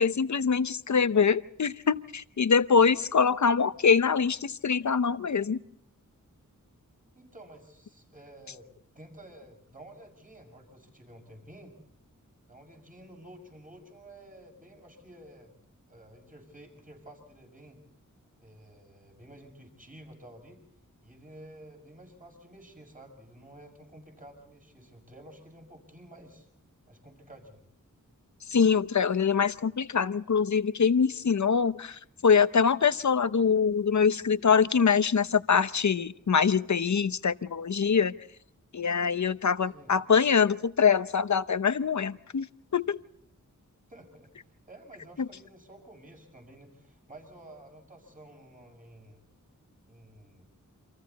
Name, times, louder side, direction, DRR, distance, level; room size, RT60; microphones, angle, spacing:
voice 1, 0.0-5.6 28.5-38.1 38.7-42.5 42.7-43.0, left 6 dB, 60° left, 13 dB, 0.8 m, -24 dB
voice 2, 7.1-8.7 8.9-11.8 12.5-15.5 15.9-17.8 18.4-20.6 21.0-26.5 26.9-27.7 39.7-39.9 43.9-44.3 44.7-49.2 49.9-50.5, right 1 dB, 25° right, 2 dB, 6.6 m, -51 dB
28.5 x 26.0 x 4.1 m, 0.67 s
wide cardioid pair, 85°, 32 cm